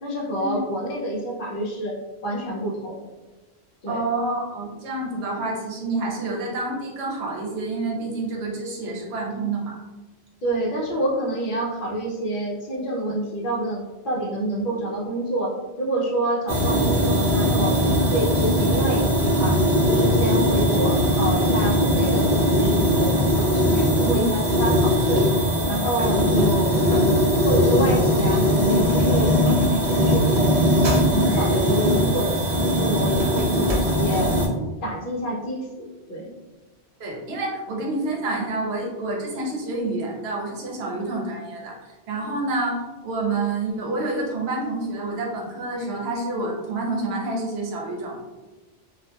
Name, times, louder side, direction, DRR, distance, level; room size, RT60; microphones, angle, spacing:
voice 1, 0.0-2.0 2.2-3.0 3.8-4.0 10.4-19.6 19.9-25.2 25.7-26.9 27.5-29.6 29.9-30.8 31.1-34.4 34.8-36.3, right 1 dB, 60° left, -3 dB, 0.7 m, -27 dB
voice 2, 3.9-9.8 24.0-24.3 33.3-33.4 37.0-48.2, right 2 dB, 75° right, -2 dB, 0.9 m, -28 dB
sound 1, 16.5-34.5, equal, 50° right, 0.6 m, -20 dB
2.7 x 2.3 x 2.2 m, 1.2 s
omnidirectional pair, 1.1 m